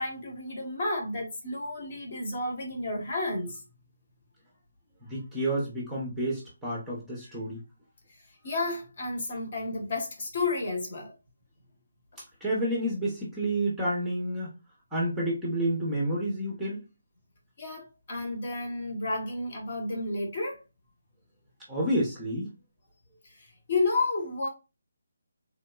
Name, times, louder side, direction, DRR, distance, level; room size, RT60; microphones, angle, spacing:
voice 1, 0.0-3.6 8.4-11.1 17.6-20.6 23.7-24.5, left 2 dB, 35° left, 1.0 m, -31 dB
voice 2, 5.0-7.6 12.4-14.5 14.9-16.8 21.7-22.5, right 1 dB, 5° right, 0.7 m, -29 dB
3.5 x 2.8 x 2.2 m
hypercardioid pair, 175°, 0 cm